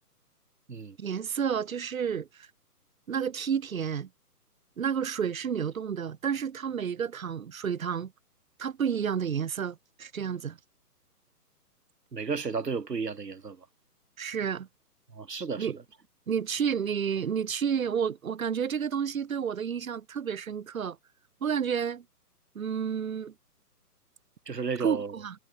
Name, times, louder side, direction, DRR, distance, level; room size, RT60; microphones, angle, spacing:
voice 1, 1.0-2.5 3.1-4.1 4.8-8.1 8.6-10.6 14.2-14.7 15.6-15.8 16.3-21.0 21.4-22.0 22.5-23.3 24.8-25.4, right 7 dB, 55° right, 2.9 m, -30 dB
voice 2, 12.1-13.7 15.1-15.8 24.5-25.1, right 5 dB, 85° right, 5.1 m, -33 dB
hypercardioid pair, 155°, 47 cm